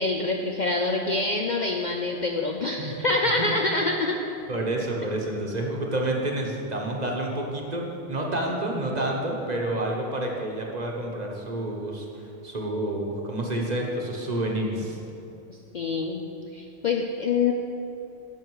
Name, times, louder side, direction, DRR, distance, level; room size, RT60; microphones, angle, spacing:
voice 1, 0.0-4.2 15.5-17.5, left 3 dB, 50° left, 1 dB, 0.6 m, -26 dB
voice 2, 4.5-15.0, right 1 dB, 35° right, 0 dB, 1.1 m, -29 dB
10.5 x 6.5 x 4.7 m, 2.8 s
omnidirectional pair, 1.2 m